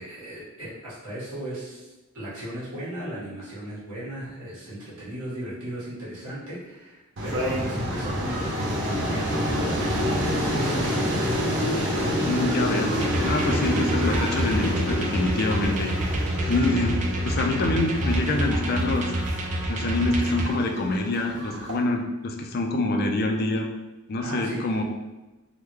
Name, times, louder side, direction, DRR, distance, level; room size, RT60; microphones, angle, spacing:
voice 1, 0.0-9.6 10.0-11.2 24.2-24.8, right 1 dB, 85° right, -8 dB, 1.5 m, -36 dB
sound 1, 7.2-21.8, equal, 55° right, 0.7 m, -28 dB
voice 2, 12.2-12.9 13.2-15.9 16.5-17.0 17.2-19.1 19.7-23.7 24.1-24.8, left 2 dB, 45° left, 3 dB, 0.4 m, -25 dB
sound 2, 13.0-20.5, right 1 dB, 35° right, 0.4 m, -28 dB
3.6 x 2.1 x 3.1 m, 1.1 s
head